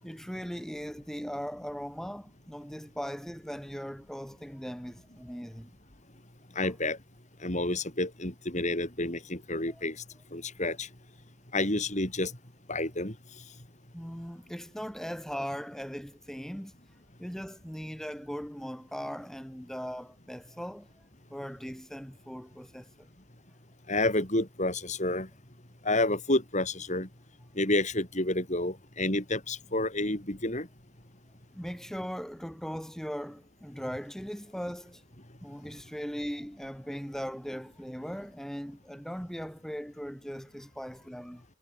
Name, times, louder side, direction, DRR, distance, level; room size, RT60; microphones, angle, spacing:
voice 1, 0.0-5.7 6.6-6.7 9.7-9.8 13.9-16.7 17.2-23.1 31.5-35.0 35.4-41.4, equal, ahead, 4.1 m, -39 dB
voice 2, 6.6-7.0 7.4-10.0 10.3-10.9 11.5-12.3 12.7-13.1 23.9-25.3 25.8-27.1 27.6-30.7, left 2 dB, 35° left, 5.0 m, -29 dB
head